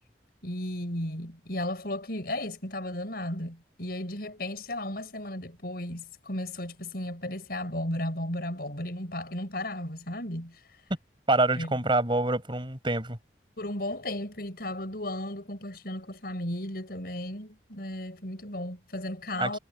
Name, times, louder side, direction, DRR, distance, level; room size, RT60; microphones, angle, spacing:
voice 1, 0.4-10.6 11.6-11.8 13.6-19.6, left 1 dB, 60° left, 6.2 m, -35 dB
voice 2, 11.3-13.2 19.4-19.6, right 2 dB, 30° right, 6.1 m, -26 dB
head